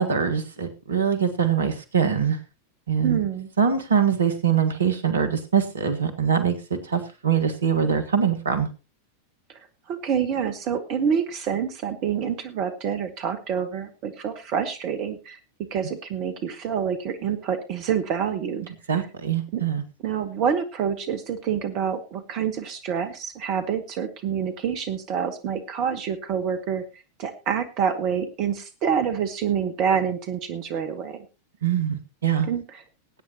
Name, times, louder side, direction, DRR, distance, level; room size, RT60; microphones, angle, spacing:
voice 1, 0.0-2.4 2.9-3.2 3.6-8.7 18.9-19.8 31.6-32.5, right 7 dB, 70° right, 10 dB, 1.6 m, -23 dB
voice 2, 3.0-3.5 9.9-15.4 15.7-18.7 19.5-19.6 20.0-31.2 32.5-32.8, right 7 dB, 40° right, 9 dB, 1.3 m, -27 dB
21.0 x 9.1 x 2.9 m, 0.30 s
figure-of-eight pair, 90°, 0 cm